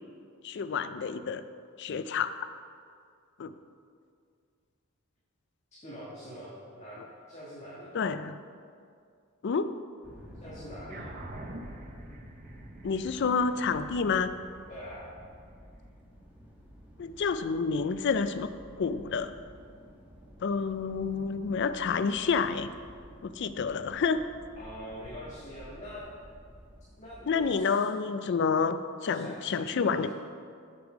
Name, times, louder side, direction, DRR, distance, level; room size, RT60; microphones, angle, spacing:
voice 1, 0.4-1.4 1.8-2.3 3.4-3.5 7.9-8.4 9.4-9.8 12.8-14.3 17.0-18.5 18.8-19.3 20.4-22.7 23.2-24.2 27.3-30.1, left 5 dB, 50° left, 12 dB, 0.4 m, -29 dB
voice 2, 5.8-7.0 7.3-8.0 10.4-11.1 14.7-15.2 24.5-26.1 27.0-27.8 29.1-30.1, equal, 30° left, -8 dB, 1.5 m, -44 dB
sound 1, 10.0-27.6, equal, 5° right, 1.3 m, -51 dB
sound 2, 10.9-15.6, right 1 dB, 40° right, 0.7 m, -46 dB
8.0 x 6.9 x 4.8 m, 2.3 s
head